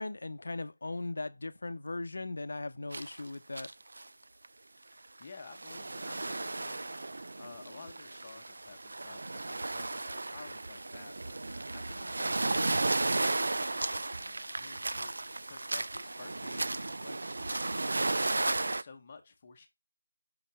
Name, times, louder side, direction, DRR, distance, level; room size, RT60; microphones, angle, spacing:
voice 1, 0.0-3.7, left 2 dB, 55° left, 0.8 m, -38 dB
sound 1, 2.9-3.2 3.5-4.1 4.4-4.5 5.2-18.8, right 2 dB, 55° right, 0.4 m, -34 dB
voice 2, 4.9-15.1 15.5-19.7, left 4 dB, 25° left, 1.0 m, -53 dB
5.8 x 5.6 x 3.4 m
figure-of-eight pair, 170°, 0 cm